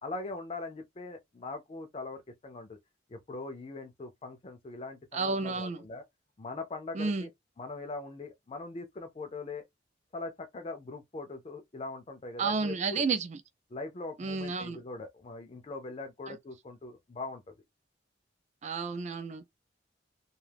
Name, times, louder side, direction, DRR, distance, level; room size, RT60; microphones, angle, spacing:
voice 1, 0.0-2.8 3.1-6.0 6.4-7.3 7.6-9.6 10.1-13.1 13.7-17.5, left 3 dB, 30° left, 0.4 m, -41 dB
voice 2, 5.1-5.8 6.9-7.3 12.4-13.4 14.2-14.8 16.3-16.4 18.6-19.5, right 4 dB, 40° right, 0.4 m, -31 dB
2.4 x 2.3 x 3.3 m
head